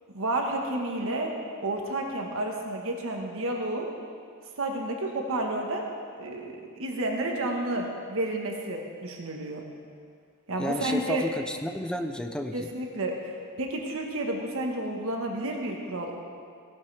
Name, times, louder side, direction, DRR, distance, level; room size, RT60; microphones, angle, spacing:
voice 1, 0.1-3.9 4.6-5.9 6.2-9.6 10.5-11.2 12.5-16.2, right 1 dB, 65° right, 1 dB, 1.4 m, -31 dB
voice 2, 10.6-12.7, equal, 5° left, 5 dB, 0.6 m, -32 dB
16.5 x 11.5 x 3.4 m, 2.1 s
head